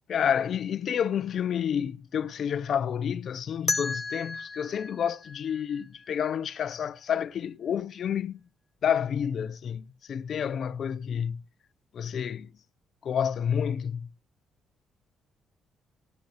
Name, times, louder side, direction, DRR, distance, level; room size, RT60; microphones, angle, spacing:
voice 1, 0.1-8.4 8.8-11.4 11.9-12.5 13.0-14.1, left 8 dB, 60° left, 0.7 m, -29 dB
sound 1, 3.7-6.5, left 3 dB, 25° left, 0.7 m, -34 dB
19.0 x 8.0 x 3.4 m
cardioid pair, 90°, 0 cm